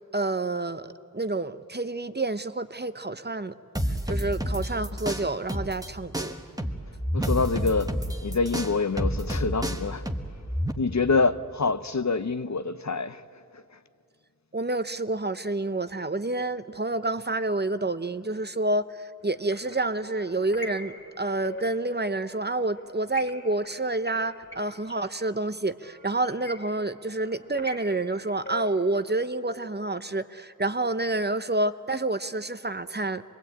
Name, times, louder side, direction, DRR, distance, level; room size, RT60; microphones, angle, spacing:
voice 1, 0.1-3.5 4.1-6.3 14.5-33.2, right 2 dB, 30° right, 0.7 m, -28 dB
sound 1, 3.7-5.9 6.1-10.7, equal, 10° right, 1.4 m, -29 dB
voice 2, 7.1-10.0 10.8-13.2 13.5-13.6, left 4 dB, 55° left, 0.7 m, -26 dB
sound 2, 19.3-29.0, left 1 dB, 35° left, 2.4 m, -44 dB
25.0 x 22.0 x 8.8 m
wide cardioid pair, 45°, 34 cm